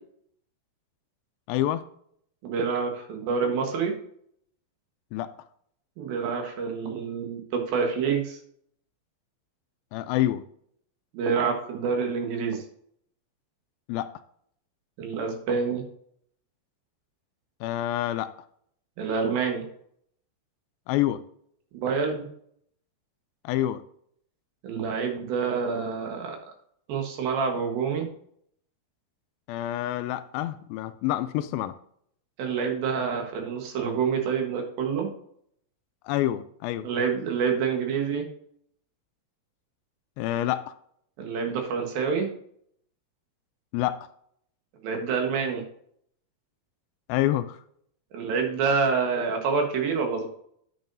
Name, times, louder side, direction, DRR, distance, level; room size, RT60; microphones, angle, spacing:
voice 1, 1.5-1.8 5.1-5.3 9.9-10.4 13.9-14.1 17.6-18.3 20.9-21.2 23.4-23.8 29.5-31.7 36.1-36.9 40.2-40.7 43.7-44.0 47.1-47.6, left 13 dB, 80° left, 12 dB, 2.3 m, -27 dB
voice 2, 2.4-4.0 6.0-8.4 11.1-12.6 15.0-15.8 19.0-19.6 21.7-22.3 24.6-26.4 26.9-28.1 32.4-35.1 36.8-38.3 41.2-42.3 44.8-45.6 48.1-50.3, right 5 dB, 70° right, 3 dB, 3.1 m, -27 dB
11.0 x 7.8 x 2.6 m, 0.67 s
omnidirectional pair, 4.4 m